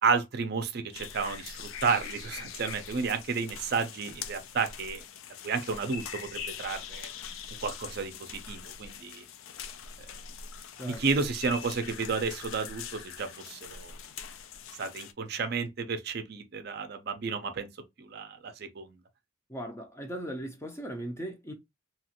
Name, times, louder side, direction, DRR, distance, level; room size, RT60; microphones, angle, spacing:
voice 1, 0.0-5.0 5.4-7.1 7.6-9.2 10.8-13.9 14.8-17.7 18.0-18.9, right 5 dB, 50° right, 0.4 m, -32 dB
sound 1, 0.9-15.1, left 7 dB, 75° left, 0.4 m, -43 dB
voice 2, 19.5-21.5, right 1 dB, 15° left, 0.4 m, -38 dB
2.9 x 2.4 x 2.8 m
head